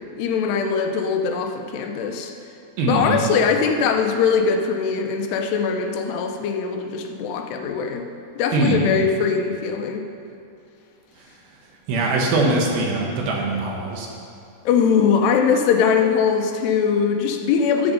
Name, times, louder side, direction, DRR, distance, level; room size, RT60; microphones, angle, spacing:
voice 1, 0.0-2.3 2.9-8.1 8.4-10.0 14.7-17.9, left 6 dB, 85° left, 4 dB, 3.0 m, -21 dB
voice 2, 2.8-3.2 8.5-9.0 11.9-14.1, right 2 dB, 70° right, -1 dB, 3.1 m, -22 dB
14.0 x 7.1 x 5.3 m, 2.6 s
omnidirectional pair, 4.7 m